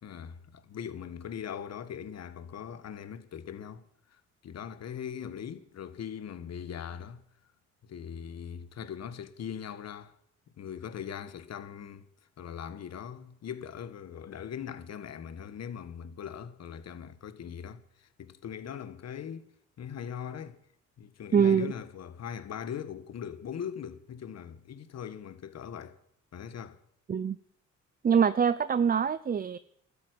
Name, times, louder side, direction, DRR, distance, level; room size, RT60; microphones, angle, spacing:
voice 1, 0.0-3.8 4.1-7.2 7.9-10.2 10.6-12.1 12.4-19.5 19.8-20.6 21.0-26.0 26.3-26.8, left 8 dB, 60° left, 1.5 m, -40 dB
voice 2, 21.3-21.7 27.1-27.4 28.0-29.6, right 7 dB, 30° right, 0.5 m, -24 dB
13.0 x 8.6 x 9.6 m
cardioid pair, 90°, 30 cm